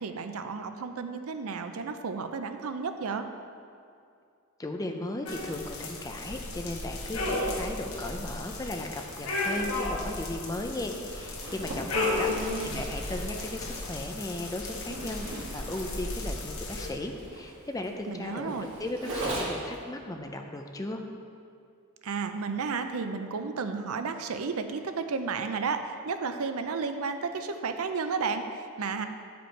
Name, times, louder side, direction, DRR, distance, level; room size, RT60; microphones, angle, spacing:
voice 1, 0.0-3.3 11.9-12.8 18.1-18.7 22.0-29.1, right 5 dB, 75° right, 8 dB, 0.5 m, -33 dB
voice 2, 4.6-15.3 15.5-18.5 18.8-21.0, left 1 dB, 15° left, 4 dB, 0.5 m, -36 dB
sound 1, 5.2-16.9, left 2 dB, 75° left, 1.4 m, -34 dB
Zipper (clothing), 11.1-19.8, right 1 dB, 60° right, 1.7 m, -39 dB
10.5 x 5.2 x 4.6 m, 2.4 s
head